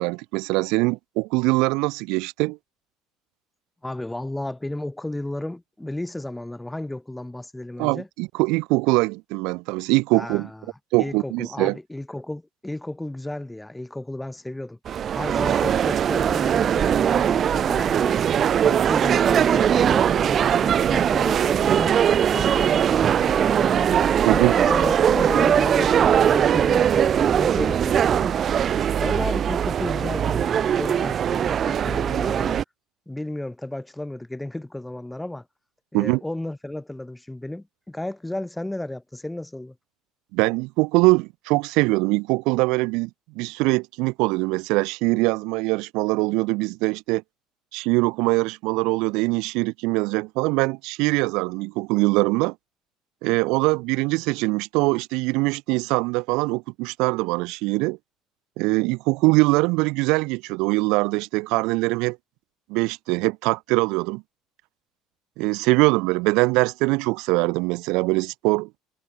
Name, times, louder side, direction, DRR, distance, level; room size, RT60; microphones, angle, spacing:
voice 1, 0.0-2.6 7.8-10.5 10.9-11.8 24.2-24.5 35.9-36.2 40.3-43.1 43.3-47.2 47.7-52.5 53.2-58.0 58.6-62.2 62.7-64.2 65.4-68.7, right 25 dB, 80° right, 0.8 m, -22 dB
voice 2, 3.8-8.1 10.1-10.7 11.0-14.8 15.1-18.3 18.6-22.0 22.3-23.9 24.3-28.4 29.0-32.6 33.1-35.4 35.9-39.7, left 1 dB, 5° left, 3.4 m, -33 dB
sound 1, 14.9-32.6, right 9 dB, 45° right, 0.8 m, -20 dB
cardioid pair, 110°, 0 cm